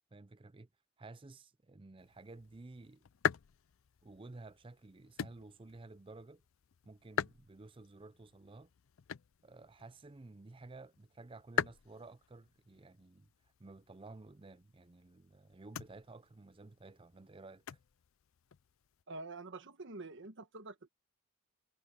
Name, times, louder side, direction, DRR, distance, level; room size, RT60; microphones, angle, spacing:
voice 1, 0.1-0.7 1.0-3.0 4.0-6.4 6.8-8.7 9.4-13.3 13.6-17.8, right 2 dB, 25° right, 0.5 m, -53 dB
sound 1, 2.0-19.0, left 8 dB, 65° left, 0.5 m, -44 dB
voice 2, 19.1-20.8, right 3 dB, 60° right, 1.3 m, -46 dB
head